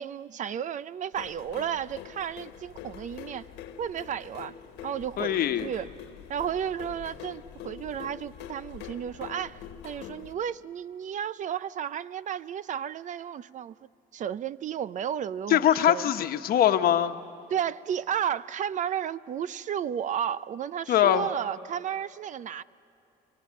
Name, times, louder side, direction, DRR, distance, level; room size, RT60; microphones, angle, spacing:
voice 1, 0.0-3.5 3.8-4.5 4.8-5.9 6.3-13.7 14.1-16.0 17.5-22.6, right 9 dB, 50° right, 0.5 m, -33 dB
sound 1, 1.1-10.3, left 9 dB, 90° left, 1.3 m, -44 dB
voice 2, 5.2-5.7 15.5-17.2 20.9-21.3, left 11 dB, 60° left, 1.1 m, -22 dB
28.0 x 23.5 x 7.6 m
cardioid pair, 110°, 17 cm